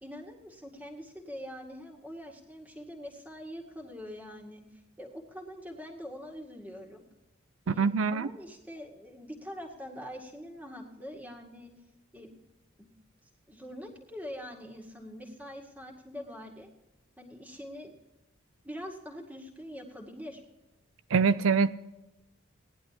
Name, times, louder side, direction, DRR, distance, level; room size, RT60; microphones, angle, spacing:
voice 1, 0.0-7.0 7.7-11.7 12.1-12.3 12.8-12.9 13.5-16.7 17.2-17.9 18.6-20.4, equal, 5° right, 0 dB, 2.0 m, -44 dB
voice 2, 7.8-8.3 21.1-21.7, right 5 dB, 80° right, 13 dB, 0.5 m, -24 dB
18.0 x 11.0 x 2.9 m, 0.97 s
head